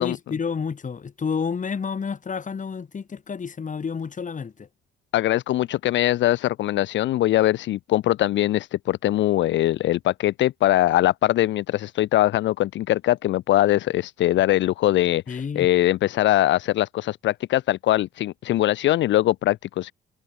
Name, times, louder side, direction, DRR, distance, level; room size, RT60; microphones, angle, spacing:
voice 1, 0.0-4.7 15.3-15.7, left 6 dB, 40° left, 3.8 m, -30 dB
voice 2, 5.1-19.9, left 14 dB, 70° left, 0.5 m, -22 dB
cardioid pair, 90°, 20 cm